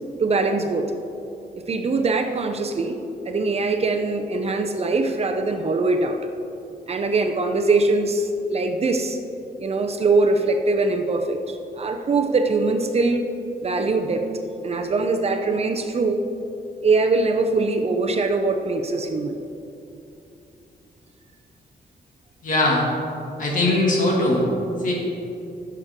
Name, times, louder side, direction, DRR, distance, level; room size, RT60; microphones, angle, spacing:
voice 1, 0.2-0.9 1.5-6.2 6.9-9.2 9.6-13.2 13.6-14.2 14.6-16.2 16.8-19.4, right 3 dB, 40° right, 5 dB, 0.6 m, -22 dB
voice 2, 22.4-22.8 23.4-24.4 24.8-24.9, left 2 dB, 50° left, -3 dB, 2.2 m, -20 dB
15.5 x 6.9 x 3.6 m, 2.8 s
wide cardioid pair, 155°, 17 cm